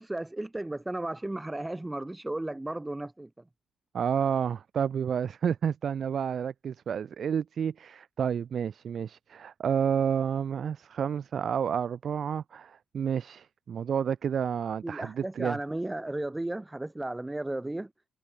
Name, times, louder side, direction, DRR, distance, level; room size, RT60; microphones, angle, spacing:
voice 1, 0.0-3.3 14.8-17.9, right 1 dB, 10° right, 4.2 m, -34 dB
voice 2, 3.9-15.6, right 7 dB, 55° right, 2.2 m, -30 dB
cardioid pair, 90°, 0 cm